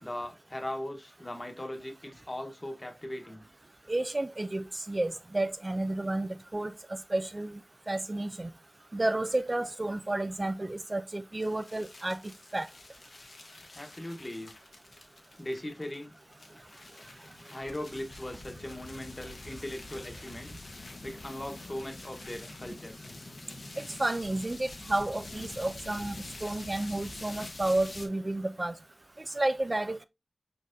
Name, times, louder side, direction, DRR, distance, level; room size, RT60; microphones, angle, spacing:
voice 1, 0.0-3.4 13.7-14.5 15.4-16.1 17.5-20.6 21.0-22.9, left 1 dB, 35° left, 1.1 m, -39 dB
voice 2, 3.9-6.7 7.1-7.6 7.9-8.5 8.9-12.2 12.5-12.7 23.8-26.2 26.4-28.7 29.3-30.0, right 2 dB, 40° right, 0.3 m, -31 dB
sound 1, 11.4-28.1, left 2 dB, 85° left, 1.0 m, -46 dB
4.7 x 4.3 x 2.6 m
wide cardioid pair, 55°, 0 cm